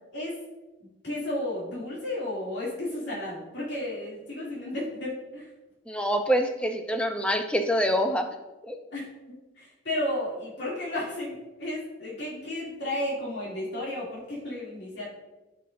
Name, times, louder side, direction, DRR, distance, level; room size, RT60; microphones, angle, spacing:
voice 1, 0.8-5.5 8.9-15.1, left 1 dB, 65° left, -7 dB, 2.6 m, -33 dB
voice 2, 5.9-8.3 8.6-8.8, equal, 5° left, 5 dB, 0.6 m, -25 dB
13.0 x 5.8 x 2.6 m, 1.1 s
head